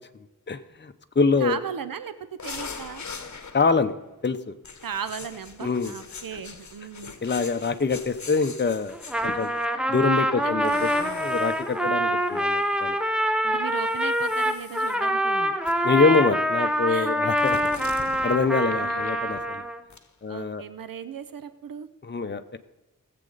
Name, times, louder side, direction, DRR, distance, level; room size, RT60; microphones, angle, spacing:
voice 1, 0.5-1.6 3.5-3.9 4.2-4.5 5.6-5.9 7.2-9.0 9.2-9.5 9.9-13.0 15.8-17.6 18.2-19.6 20.2-20.6 22.1-22.6, left 4 dB, 30° left, 8 dB, 0.7 m, -25 dB
voice 2, 1.4-2.1 2.4-3.1 4.8-7.1 10.4-10.9 11.8-12.4 13.4-15.6 16.1-16.2 16.9-17.2 18.7-19.2 20.3-21.9, right 7 dB, 85° right, 12 dB, 0.6 m, -37 dB
sound 1, 2.4-3.9 4.6-9.6 10.6-12.8 13.8-15.0 15.6-16.0 17.4-19.6 19.9-20.1, left 5 dB, 55° left, 1.0 m, -42 dB
Trumpet, 8.9-19.8, equal, 5° right, 0.8 m, -25 dB
18.5 x 7.7 x 3.9 m, 1.0 s
wide cardioid pair, 60°, 34 cm